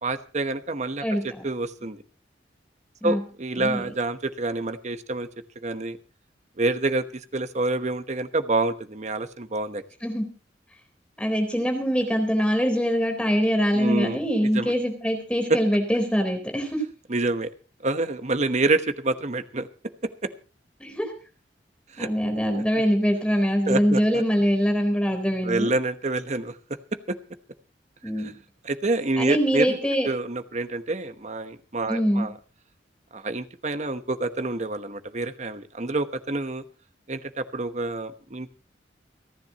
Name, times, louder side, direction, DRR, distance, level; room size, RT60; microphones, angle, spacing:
voice 1, 0.0-2.0 3.0-5.3 5.6-6.0 6.6-9.8 13.7-14.7 17.1-17.5 17.8-19.7 20.2-20.3 21.9-22.1 22.6-22.7 23.7-24.2 25.4-26.6 27.1-27.2 28.2-28.3 28.6-29.8 30.0-32.3 33.1-36.6 37.1-38.5, right 2 dB, 40° right, 10 dB, 1.1 m, -27 dB
voice 2, 11.2-16.8 20.8-21.1 22.0-25.7 28.0-28.3 29.2-30.1 31.9-32.3, equal, 5° left, 4 dB, 3.9 m, -23 dB
29.5 x 10.5 x 3.0 m, 0.35 s
head